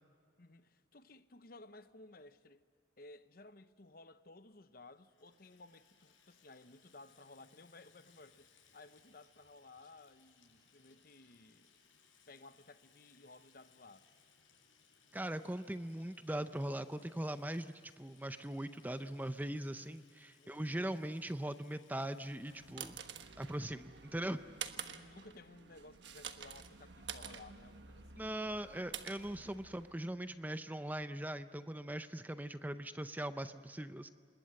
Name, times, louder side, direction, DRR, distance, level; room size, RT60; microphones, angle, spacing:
voice 1, 0.4-2.6 3.0-11.7 12.3-14.1 20.4-20.9 24.8-28.3, left 2 dB, 50° left, 0.9 m, -57 dB
Water tap faucet / Sink (filling or washing), 4.8-22.7, left 6 dB, 90° left, 6.0 m, -68 dB
voice 2, 15.1-23.0 23.4-24.4 28.2-34.1, right 1 dB, 10° right, 0.6 m, -40 dB
sound 1, 22.3-30.0, right 8 dB, 65° right, 1.3 m, -49 dB
27.5 x 21.0 x 7.7 m
head